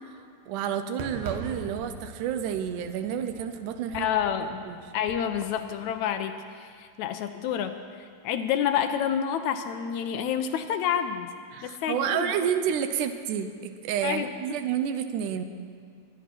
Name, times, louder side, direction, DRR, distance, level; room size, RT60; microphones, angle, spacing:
voice 1, 0.5-4.1 4.4-4.8 11.5-15.4, right 8 dB, 85° right, 8 dB, 2.3 m, -30 dB
Fireworks, 1.0-6.1, right 5 dB, 65° right, 2.1 m, -43 dB
voice 2, 3.9-4.7 4.9-11.3 11.6-12.4 14.0-14.3, left 9 dB, 75° left, 8 dB, 1.9 m, -29 dB
22.0 x 10.0 x 6.0 m, 2.1 s
omnidirectional pair, 3.6 m